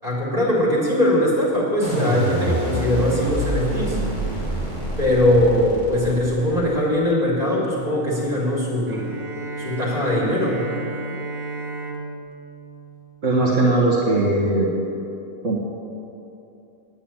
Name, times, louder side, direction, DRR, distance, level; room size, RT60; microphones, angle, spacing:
voice 1, 0.0-4.0 5.0-9.0 9.6-10.7, left 1 dB, 25° right, -6 dB, 3.7 m, -21 dB
sound 1, 1.8-6.9, right 1 dB, 35° left, 3.1 m, -26 dB
Bowed string instrument, 8.9-13.8, right 3 dB, 90° right, 1.7 m, -33 dB
voice 2, 13.2-14.7 15.4-15.6, right 2 dB, 65° right, -6 dB, 1.8 m, -19 dB
9.4 x 9.1 x 8.7 m, 2.8 s
omnidirectional pair, 1.4 m